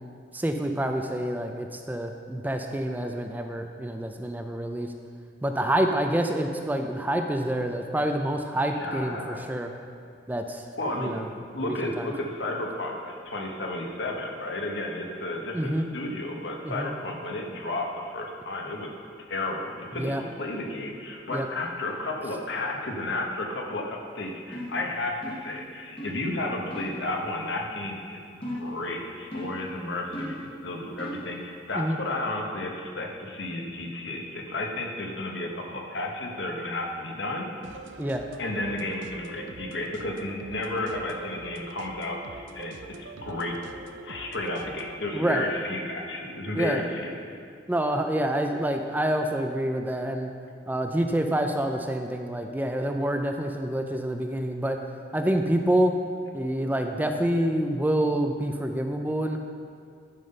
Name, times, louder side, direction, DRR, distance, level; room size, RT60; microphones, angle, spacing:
voice 1, 0.3-4.9 5.4-9.7 10.3-10.6 11.0-11.3 11.6-12.1 15.5-15.9 16.7-16.9 19.9-20.2 21.3-21.5 31.8-32.0 38.0-38.2 45.1-45.4 46.5-46.8 47.7-50.3 50.7-54.8 55.1-56.0 56.3-59.4, right 1 dB, 10° right, 4 dB, 0.4 m, -27 dB
voice 2, 8.7-9.5 10.8-11.2 11.5-18.9 19.3-37.5 38.4-43.6 44.0-47.1, left 2 dB, 70° left, 1 dB, 1.2 m, -32 dB
sound 1, 24.5-24.8 25.2-25.6 26.0-26.2 26.7-27.0 28.4-28.8 29.3-29.7 30.1-30.5 31.0-31.3, equal, 30° left, 1.2 m, -36 dB
sound 2, 37.6-45.0, right 4 dB, 85° right, 0.6 m, -44 dB
11.0 x 5.6 x 5.5 m, 2.3 s
head